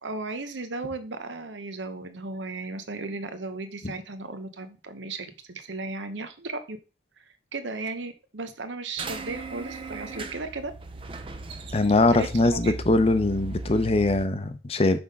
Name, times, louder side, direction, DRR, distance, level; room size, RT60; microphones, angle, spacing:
voice 1, 0.0-6.8 7.5-10.7 12.1-12.7, right 3 dB, 85° right, 0.9 m, -35 dB
sound 1, 9.0-14.3, right 2 dB, 30° right, 0.5 m, -37 dB
voice 2, 11.7-15.0, left 2 dB, 35° left, 0.6 m, -22 dB
6.0 x 3.6 x 5.3 m
head